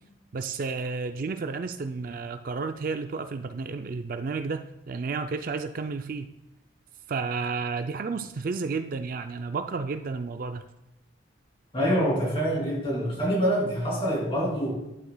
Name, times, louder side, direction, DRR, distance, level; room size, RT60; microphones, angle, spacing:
voice 1, 0.3-6.3 7.1-10.7, right 4 dB, 45° right, 8 dB, 0.4 m, -32 dB
voice 2, 11.7-14.7, equal, 25° left, -3 dB, 2.8 m, -25 dB
11.0 x 7.9 x 2.2 m, 0.95 s
head